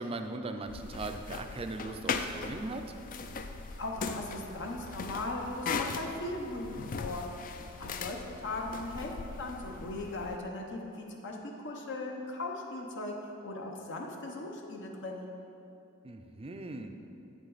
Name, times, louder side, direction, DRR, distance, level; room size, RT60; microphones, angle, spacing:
voice 1, 0.0-2.8 16.0-16.9, right 2 dB, 25° right, 6 dB, 0.4 m, -39 dB
sound 1, 0.7-10.4, left 4 dB, 40° left, 0.4 m, -39 dB
voice 2, 3.8-7.3 7.8-15.3, left 2 dB, 55° left, 1 dB, 0.8 m, -38 dB
8.2 x 7.2 x 4.0 m, 2.7 s
head